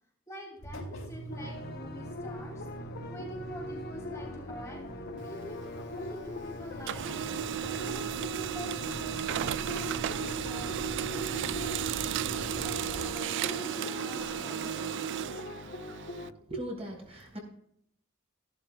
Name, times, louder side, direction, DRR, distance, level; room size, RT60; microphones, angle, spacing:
voice 1, 0.3-2.7 3.1-4.8 5.2-5.6 5.8-10.7 11.0-14.7, equal, 15° left, -2 dB, 2.9 m, -46 dB
Engine, 0.6-14.6, equal, 80° left, 3.2 m, -44 dB
sound 1, 1.3-16.3, left 2 dB, 50° left, 1.0 m, -42 dB
Printer, 5.2-6.4 6.7-16.3, right 10 dB, 60° right, 0.3 m, -34 dB
voice 2, 16.5-17.4, right 1 dB, 30° right, 0 dB, 4.6 m, -38 dB
15.5 x 12.5 x 2.4 m, 0.72 s
head